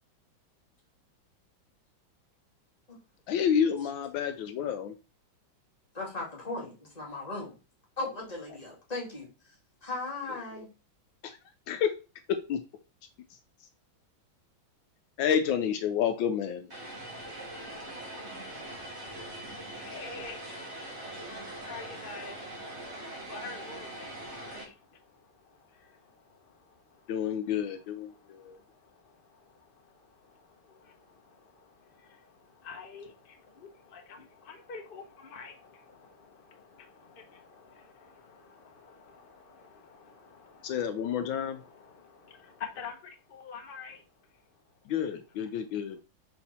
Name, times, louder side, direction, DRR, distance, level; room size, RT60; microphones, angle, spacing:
voice 1, 3.3-4.9 11.2-11.4 11.7-11.9 12.3-12.6 15.2-16.7 27.1-28.6 40.6-41.6 44.9-46.0, left 8 dB, 75° left, 8 dB, 1.3 m, -29 dB
voice 2, 5.9-7.5 8.0-10.7, left 2 dB, 20° left, -4 dB, 2.4 m, -37 dB
Vehicle, 16.7-24.6, right 1 dB, 35° right, 2.5 m, -42 dB
voice 3, 18.5-27.1 28.1-44.0, left 5 dB, 60° left, 5 dB, 0.5 m, -49 dB
5.6 x 4.4 x 4.1 m, 0.32 s
omnidirectional pair, 2.2 m